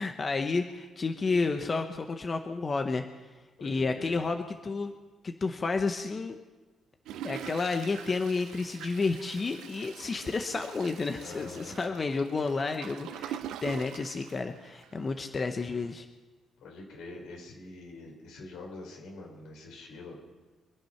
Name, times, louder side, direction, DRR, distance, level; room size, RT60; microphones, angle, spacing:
voice 1, 0.0-3.0 3.6-4.9 5.2-6.4 7.2-16.1, left 4 dB, 35° left, 6 dB, 1.0 m, -31 dB
voice 2, 3.6-4.2 11.2-11.7 16.6-20.2, left 3 dB, 85° left, 0 dB, 4.8 m, -45 dB
Toilet flush, 7.1-15.1 15.6-15.7 15.8-15.9, right 10 dB, 90° right, 0.7 m, -44 dB
25.0 x 8.8 x 5.9 m, 1.3 s
cardioid pair, 90°, 0 cm